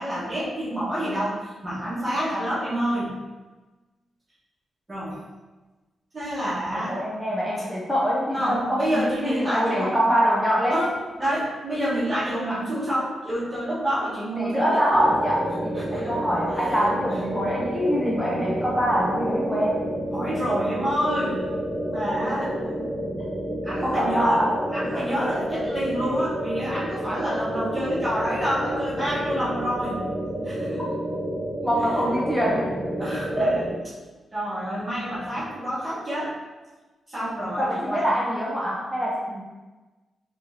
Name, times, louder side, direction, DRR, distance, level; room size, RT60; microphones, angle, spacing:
voice 1, 0.0-3.2 4.9-5.2 6.1-7.0 8.3-10.0 10.7-10.9 11.2-14.8 15.8-16.1 16.5-16.6 20.1-21.5 21.8-22.5 23.6-24.4 24.7-30.0 30.4-30.8 33.0-33.6 34.3-36.4 37.1-38.1, equal, 25° right, -9 dB, 1.4 m, -28 dB
voice 2, 6.7-10.8 14.4-19.8 23.8-24.5 31.6-32.7 33.3-33.5 37.6-39.4, equal, 5° left, -5 dB, 0.8 m, -24 dB
sound 1, 14.9-33.8, equal, 30° left, 1.2 m, -30 dB
4.2 x 3.2 x 2.8 m, 1.2 s
cardioid pair, 75°, 0 cm